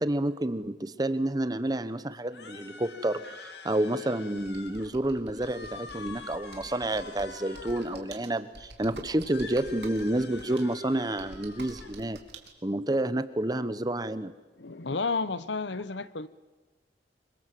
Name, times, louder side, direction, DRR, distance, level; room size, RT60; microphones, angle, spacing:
voice 1, 0.0-12.2 12.6-14.3, right 1 dB, 20° right, 13 dB, 1.0 m, -29 dB
sound 1, 2.3-4.9 5.3-8.1 9.2-11.9, left 4 dB, 70° left, 2.5 m, -46 dB
Computer keyboard, 4.4-12.5, right 3 dB, 70° right, 3.0 m, -49 dB
voice 2, 14.6-16.3, left 4 dB, 85° left, 15 dB, 1.1 m, -31 dB
26.0 x 24.0 x 7.7 m, 1.2 s
head